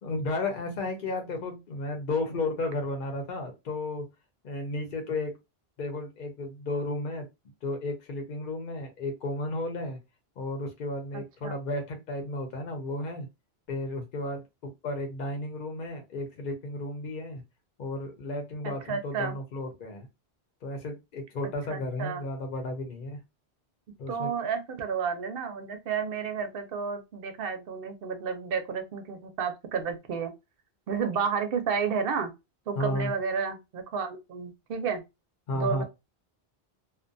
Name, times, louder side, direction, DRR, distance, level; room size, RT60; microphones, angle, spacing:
voice 1, 0.0-4.1 4.4-5.3 5.8-7.3 7.6-10.0 10.4-13.3 13.7-17.4 17.8-20.1 20.6-23.2 24.0-24.3 32.8-33.1 35.5-35.8, left 2 dB, 55° left, 0.8 m, -33 dB
voice 2, 11.1-11.6 18.6-19.4 21.7-22.2 24.1-30.3 30.9-32.3 32.7-35.0 35.5-35.8, right 6 dB, 65° right, 0.8 m, -31 dB
2.4 x 2.2 x 2.5 m
omnidirectional pair, 1.0 m